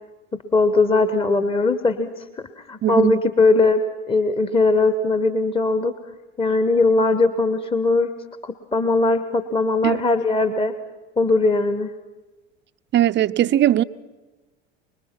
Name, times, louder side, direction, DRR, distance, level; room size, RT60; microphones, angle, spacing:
voice 1, 0.5-3.8 4.1-5.9 6.4-8.1 8.4-10.7 11.2-11.9, left 3 dB, 15° left, 1.1 m, -20 dB
voice 2, 2.8-3.2 9.8-10.0 12.9-13.8, right 12 dB, 30° right, 0.6 m, -19 dB
24.5 x 21.5 x 6.0 m
figure-of-eight pair, 70°, 37 cm